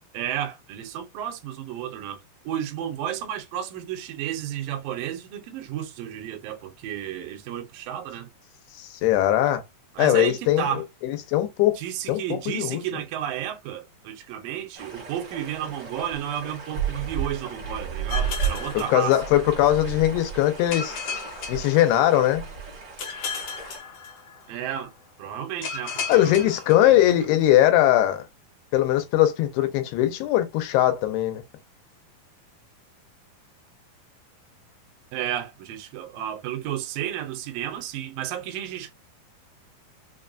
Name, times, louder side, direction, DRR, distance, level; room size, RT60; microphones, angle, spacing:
voice 1, 0.1-8.3 10.0-10.8 11.8-19.2 24.5-24.9 25.2-26.5 26.8-27.1 35.1-38.9, right 10 dB, 75° right, 2.3 m, -32 dB
voice 2, 8.8-9.6 10.0-11.8 12.1-12.8 18.9-21.0 21.5-22.4 26.1-28.2 28.7-31.4, left 13 dB, 90° left, 2.8 m, -20 dB
sound 1, 14.7-23.8, right 7 dB, 60° right, 1.0 m, -33 dB
sound 2, 18.1-19.7 20.7-22.4 23.0-24.6 25.6-27.4, left 5 dB, 70° left, 1.5 m, -35 dB
6.0 x 2.2 x 2.5 m
omnidirectional pair, 4.5 m